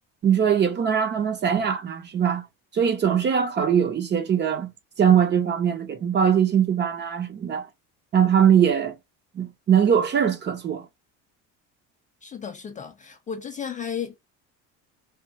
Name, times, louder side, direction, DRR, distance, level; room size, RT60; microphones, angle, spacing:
voice 1, 0.2-2.4 2.7-4.7 5.0-7.7 8.1-8.9 9.3-10.9, right 8 dB, 30° right, 0.9 m, -21 dB
voice 2, 12.2-14.2, left 7 dB, 25° left, 0.4 m, -34 dB
3.5 x 2.4 x 4.3 m
cardioid pair, 145°, 33 cm